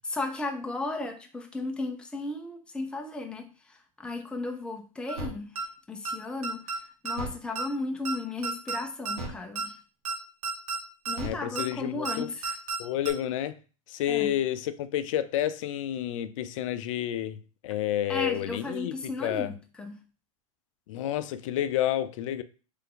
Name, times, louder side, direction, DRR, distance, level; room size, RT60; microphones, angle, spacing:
voice 1, 0.1-5.5 5.9-6.6 7.0-9.8 11.1-12.6 14.1-14.3 18.1-20.0, left 2 dB, 5° left, 0.6 m, -35 dB
sound 1, 5.1-5.3 5.5-5.6 6.0-6.1 6.4-6.8 7.0-7.3 7.5-7.6 8.0-8.1 8.4-8.8 9.0-9.3 9.5-9.6 10.0-10.1 10.4-10.8 11.0-11.3 11.5-11.6 12.0-12.1 12.4-12.8 13.0-13.1, right 3 dB, 80° right, 1.6 m, -31 dB
voice 2, 11.2-12.3 12.8-13.6 13.9-18.9 19.2-19.5 20.9-22.4, left 12 dB, 60° left, 0.5 m, -30 dB
3.4 x 3.3 x 3.8 m
hypercardioid pair, 125°, 18 cm